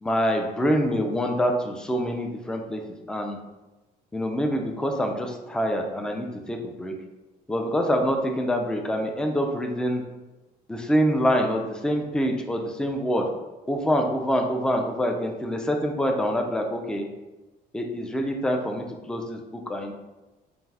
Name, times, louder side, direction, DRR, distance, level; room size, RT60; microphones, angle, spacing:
voice 1, 0.0-2.8 3.1-3.4 4.1-6.9 7.5-10.0 10.7-13.3 13.7-17.1 17.7-19.9, equal, 5° left, 3 dB, 0.3 m, -25 dB
2.6 x 2.3 x 3.2 m, 1.1 s
cardioid pair, 110°, 17 cm